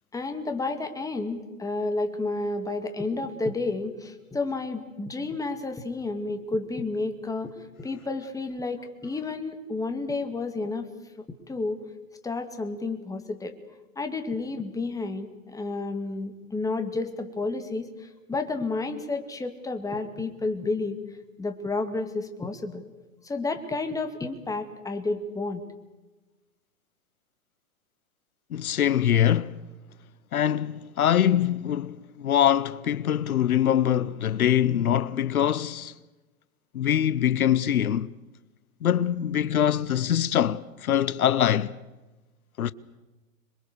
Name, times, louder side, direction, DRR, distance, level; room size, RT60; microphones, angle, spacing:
voice 1, 0.1-10.9 11.2-11.8 12.2-13.5 14.0-21.0 21.4-22.8 23.2-25.6, left 3 dB, 10° left, 2.1 m, -31 dB
voice 2, 28.5-29.6 30.3-35.9 36.7-38.1 38.8-41.7 42.6-42.7, left 10 dB, 85° left, 0.9 m, -23 dB
26.5 x 23.0 x 6.7 m
hypercardioid pair, 120°, 42 cm